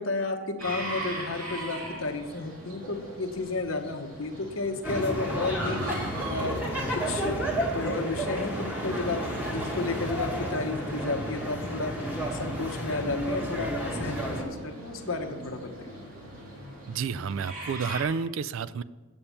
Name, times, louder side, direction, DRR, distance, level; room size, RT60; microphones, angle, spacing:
voice 1, 0.0-5.9 6.3-6.6 6.9-11.9 12.3-16.0, left 3 dB, 65° left, 5 dB, 1.0 m, -32 dB
sound 1, 0.6-18.0, right 1 dB, 80° right, 2.5 m, -42 dB
sound 2, 4.8-14.4, equal, 5° right, 1.6 m, -31 dB
voice 2, 16.9-18.8, right 6 dB, 65° right, 17 dB, 0.3 m, -30 dB
8.7 x 7.2 x 6.7 m, 1.3 s
head